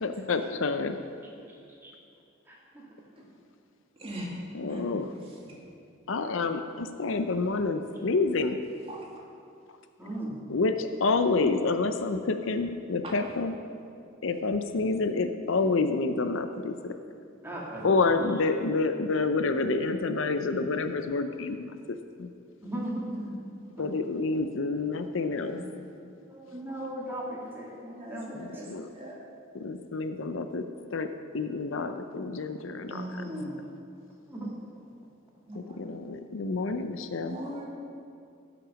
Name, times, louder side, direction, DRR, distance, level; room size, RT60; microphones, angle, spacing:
voice 1, 0.0-1.0 4.5-5.1 6.1-8.6 10.5-13.5 14.2-16.7 17.8-22.3 23.8-25.6 28.3-28.9 29.5-30.6 30.9-31.1 31.3-33.0 35.7-37.4, left 3 dB, 65° left, 8 dB, 0.6 m, -28 dB
voice 2, 1.5-2.0 2.5-2.8 10.0-10.3 17.4-18.1 22.6-23.1 23.7-23.8 26.3-27.8 28.1-28.6 34.3-34.7, right 1 dB, 10° right, -5 dB, 2.3 m, -38 dB
voice 3, 4.0-4.3 4.7-4.8 8.9-9.0 13.0-13.1 22.7-22.9 23.2-23.3 25.4-25.7 27.8-28.7 28.9-29.1 32.9-33.5 35.5-35.8 37.3-37.7, right 1 dB, 30° right, -3 dB, 2.2 m, -39 dB
15.5 x 6.0 x 6.3 m, 2.5 s
head